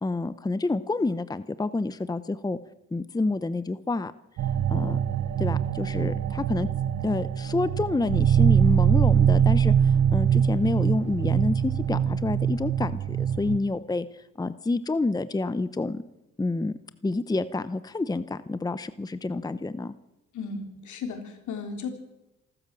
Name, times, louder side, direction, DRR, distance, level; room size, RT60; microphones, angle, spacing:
voice 1, 0.0-2.6 2.9-4.1 4.7-5.0 5.4-6.7 7.0-16.0 16.4-19.9, left 2 dB, 15° left, 14 dB, 0.8 m, -28 dB
sound 1, 4.4-13.6, right 8 dB, 70° right, 1.1 m, -23 dB
voice 2, 20.3-21.9, left 5 dB, 75° left, 5 dB, 3.8 m, -35 dB
27.0 x 13.0 x 7.6 m, 0.99 s
cardioid pair, 90°, 30 cm